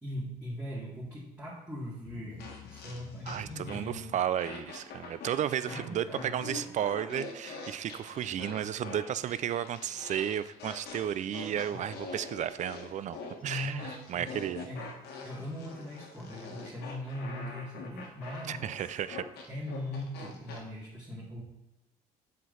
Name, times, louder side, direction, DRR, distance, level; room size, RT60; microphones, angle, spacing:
voice 1, 0.0-4.2 5.0-5.3 5.5-6.7 11.7-11.8 13.4-14.9 15.2-18.7 19.5-21.4, left 1 dB, 5° right, -8 dB, 2.1 m, -40 dB
sound 1, 2.0-14.7, left 7 dB, 55° left, 0.9 m, -57 dB
sound 2, 2.4-4.0 4.4-20.6, left 4 dB, 75° left, 1.5 m, -44 dB
voice 2, 3.3-14.7 18.5-19.2, right 10 dB, 45° right, 15 dB, 0.4 m, -33 dB
7.5 x 5.9 x 3.9 m, 0.89 s
cardioid pair, 110°, 17 cm